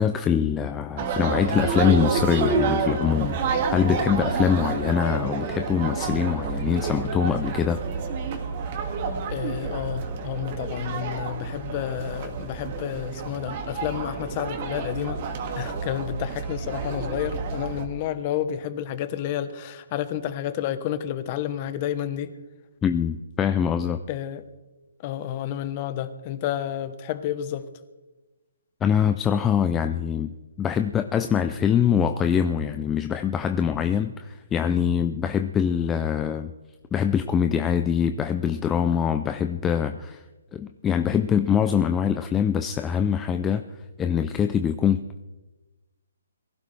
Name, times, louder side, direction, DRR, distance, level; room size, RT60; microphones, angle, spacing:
voice 1, 0.0-3.4 3.7-7.8 22.8-24.0 28.8-30.3 30.6-36.5 36.9-40.2 40.5-43.6 44.0-45.2, left 8 dB, 10° left, 8 dB, 0.5 m, -23 dB
sound 1, 1.0-17.8, right 4 dB, 30° right, 2.2 m, -29 dB
voice 2, 9.3-15.2 15.5-22.3 24.1-24.4 25.0-27.6, left 11 dB, 25° left, 12 dB, 1.1 m, -30 dB
23.0 x 16.0 x 3.4 m, 1.2 s
hypercardioid pair, 165°, 0 cm